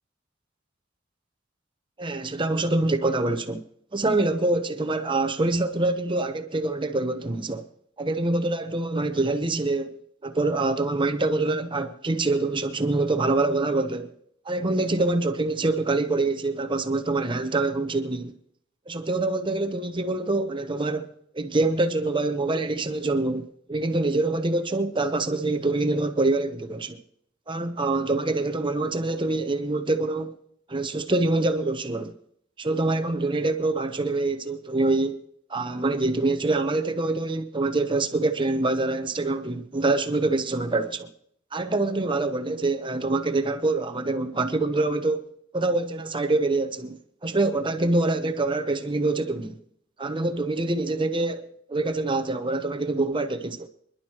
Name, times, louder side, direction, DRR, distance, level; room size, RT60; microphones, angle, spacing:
voice 1, 2.0-3.6 3.9-7.6 8.0-10.0 10.2-14.1 14.5-18.3 18.9-21.1 21.3-27.0 27.5-30.3 30.7-32.1 32.6-35.2 35.5-41.1 41.5-45.2 45.5-47.0 47.2-49.6 50.0-53.7, right 2 dB, 25° right, 0.9 m, -25 dB
26.0 x 11.5 x 3.0 m
head